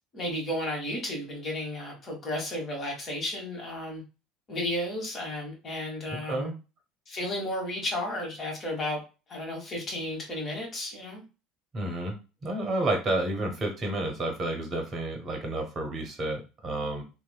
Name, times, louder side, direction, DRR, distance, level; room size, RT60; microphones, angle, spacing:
voice 1, 0.1-4.0 4.5-6.5 7.1-9.0 9.3-11.2, left 1 dB, 35° left, 0 dB, 1.3 m, -33 dB
voice 2, 6.1-6.5 11.7-12.1 12.4-17.0, right 2 dB, 35° right, 3 dB, 0.8 m, -30 dB
3.0 x 2.2 x 2.2 m, 0.31 s
figure-of-eight pair, 65°, 0 cm